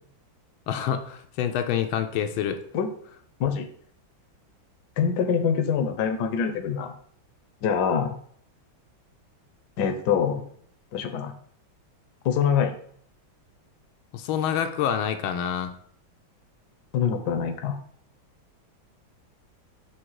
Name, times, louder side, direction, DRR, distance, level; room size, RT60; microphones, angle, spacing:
voice 1, 0.7-2.6 14.1-15.8, left 9 dB, 80° left, 7 dB, 1.4 m, -27 dB
voice 2, 5.0-6.9 7.6-8.1 9.8-10.4 10.9-11.3 12.2-12.8 16.9-17.8, left 7 dB, 65° left, 7 dB, 1.1 m, -24 dB
6.5 x 3.5 x 4.6 m, 0.62 s
omnidirectional pair, 2.2 m